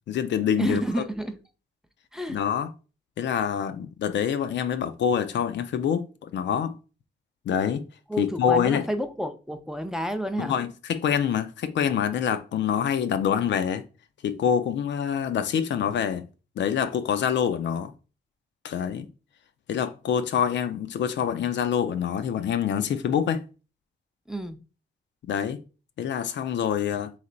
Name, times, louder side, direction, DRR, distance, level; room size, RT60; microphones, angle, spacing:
voice 1, 0.1-0.8 2.3-2.7 3.2-6.7 7.5-7.8 8.2-8.8 10.4-13.8 14.2-16.3 16.6-17.9 18.6-19.1 19.7-23.4 25.3-25.6 26.0-27.1, left 8 dB, 70° left, 0.5 m, -26 dB
voice 2, 0.6-1.4 2.1-2.4 8.1-10.6 24.3-24.6, equal, 5° right, 0.4 m, -30 dB
3.3 x 3.2 x 3.8 m
cardioid pair, 110°, 19 cm